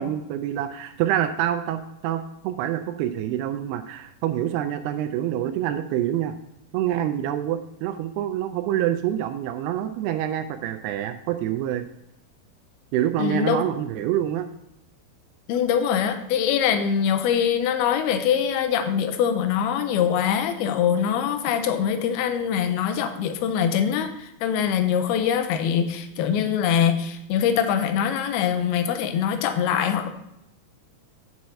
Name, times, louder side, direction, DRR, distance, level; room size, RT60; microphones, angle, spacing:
voice 1, 0.0-6.3 6.7-11.8 12.9-14.5, right 11 dB, 85° right, 7 dB, 2.5 m, -26 dB
voice 2, 13.2-13.6 15.5-30.1, left 8 dB, 80° left, 8 dB, 2.6 m, -23 dB
9.2 x 6.3 x 4.2 m, 0.81 s
omnidirectional pair, 4.6 m